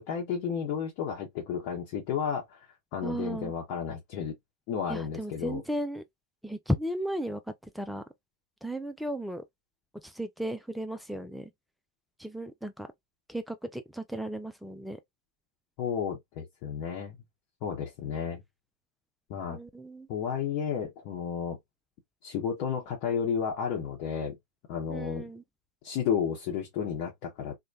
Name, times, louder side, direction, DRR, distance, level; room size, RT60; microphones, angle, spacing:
voice 1, 0.0-4.4 4.7-5.6 15.8-17.2 17.6-18.4 19.3-19.6 20.1-21.6 22.2-24.4 24.7-25.3 25.8-27.5, left 7 dB, 45° left, 0.9 m, -32 dB
voice 2, 3.0-3.5 4.9-6.0 6.4-7.4 7.7-8.0 8.6-9.4 10.0-11.5 12.2-12.9 13.3-15.0 19.5-20.1 24.9-25.4, right 1 dB, ahead, 0.4 m, -35 dB
3.1 x 2.1 x 2.5 m
figure-of-eight pair, 90°, 0 cm